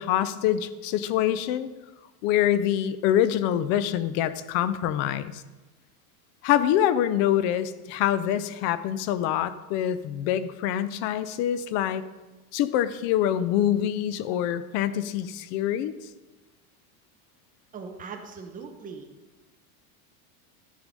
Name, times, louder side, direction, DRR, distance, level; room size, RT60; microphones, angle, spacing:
voice 1, 0.0-1.7 2.2-5.4 6.4-12.0 12.5-15.9, left 11 dB, 40° left, 14 dB, 0.4 m, -25 dB
voice 2, 17.7-19.1, right 5 dB, 20° right, 4 dB, 0.9 m, -40 dB
13.0 x 4.9 x 5.2 m, 1.1 s
supercardioid pair, 155°, 46 cm